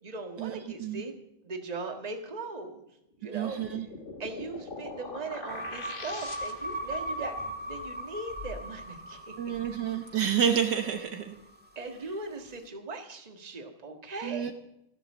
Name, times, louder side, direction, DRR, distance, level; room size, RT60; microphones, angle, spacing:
voice 1, 0.0-1.1 1.4-2.8 3.2-3.9 4.2-9.3 11.7-14.5, right 3 dB, 20° right, 5 dB, 1.5 m, -39 dB
sound 1, 3.3-6.9, left 3 dB, 30° left, 1.4 m, -42 dB
voice 2, 3.3-3.9 9.4-11.4 14.2-14.5, right 8 dB, 65° right, 6 dB, 1.5 m, -29 dB
sound 2, 5.5-11.8, equal, 5° right, 1.8 m, -39 dB
14.5 x 11.0 x 7.3 m, 0.82 s
omnidirectional pair, 2.2 m